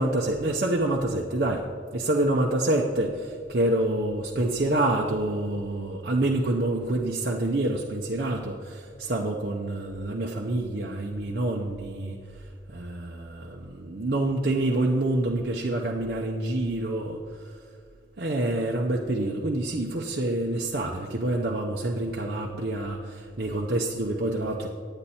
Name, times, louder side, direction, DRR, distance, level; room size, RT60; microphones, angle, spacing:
voice 1, 0.0-1.7 1.9-12.2 12.7-17.5 18.2-24.7, right 1 dB, 55° right, -1 dB, 0.7 m, -27 dB
10.0 x 8.9 x 4.2 m, 2.3 s
head